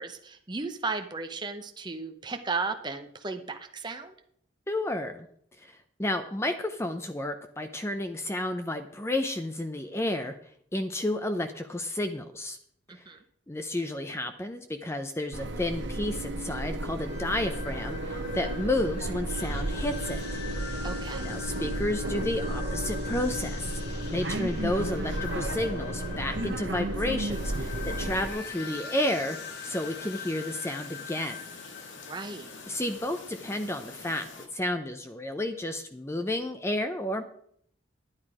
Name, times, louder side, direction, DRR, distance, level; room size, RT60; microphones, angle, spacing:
voice 1, 0.0-4.1 12.9-13.2 20.8-21.3 32.1-32.5, right 4 dB, 25° right, 6 dB, 0.7 m, -35 dB
voice 2, 4.7-5.3 5.6-10.4 10.7-12.6 12.9-13.1 13.5-20.4 20.8-20.9 21.2-23.8 24.1-29.4 29.6-31.4 32.7-37.2, left 1 dB, 15° left, 7 dB, 0.5 m, -31 dB
sound 1, 15.3-28.3, right 1 dB, 65° right, 1.1 m, -33 dB
sound 2, 17.0-33.0, left 6 dB, 55° left, 1.5 m, -43 dB
Chirp tweet, 27.3-34.5, left 4 dB, 75° left, 1.8 m, -46 dB
11.0 x 9.7 x 4.8 m, 0.66 s
head